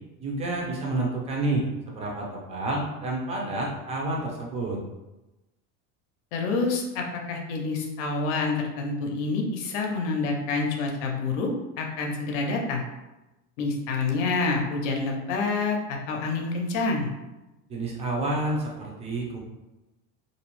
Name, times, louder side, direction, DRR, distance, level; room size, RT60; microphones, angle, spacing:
voice 1, 0.2-4.8 17.7-19.4, right 2 dB, 20° right, -2 dB, 0.5 m, -29 dB
voice 2, 6.3-11.5 11.8-12.8 13.6-17.1, left 3 dB, 75° left, 2 dB, 0.6 m, -27 dB
2.6 x 2.0 x 2.9 m, 1.0 s
supercardioid pair, 145°, 36 cm